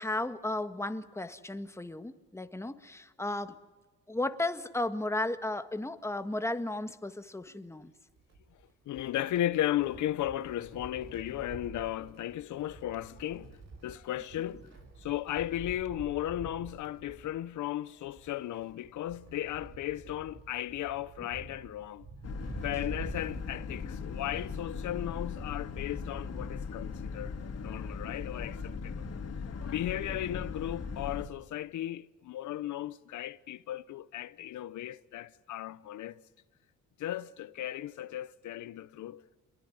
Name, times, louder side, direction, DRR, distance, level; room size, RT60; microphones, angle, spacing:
voice 1, 0.0-3.6 4.1-7.9, left 2 dB, 10° left, 1.6 m, -34 dB
Wind, 8.1-24.7 25.0-25.1 26.1-26.2, right 3 dB, 60° right, 6.8 m, -49 dB
voice 2, 8.9-14.6 15.0-22.1 22.6-27.3 27.6-29.0 29.7-36.2 37.0-39.2, left 13 dB, 75° left, 0.9 m, -35 dB
Boat Water vehicle, 22.2-31.2, left 5 dB, 55° left, 3.5 m, -39 dB
27.5 x 22.0 x 9.5 m
cardioid pair, 90°, 30 cm